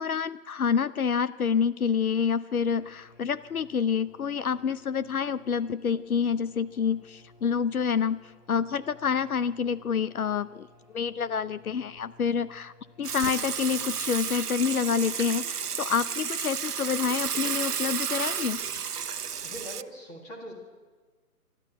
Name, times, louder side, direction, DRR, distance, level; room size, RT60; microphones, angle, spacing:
voice 1, 0.0-10.7 10.9-18.6, left 6 dB, 70° left, 15 dB, 0.7 m, -28 dB
sound 1, 2.6-14.3, left 1 dB, 30° left, 4.4 m, -57 dB
Water / Water tap faucet / Sink (filling or washing), 13.0-19.8, right 7 dB, 85° right, 0.9 m, -32 dB
voice 2, 19.4-20.5, equal, 5° left, 0 dB, 1.8 m, -41 dB
25.0 x 12.5 x 9.1 m, 1.4 s
hypercardioid pair, 165°, 45 cm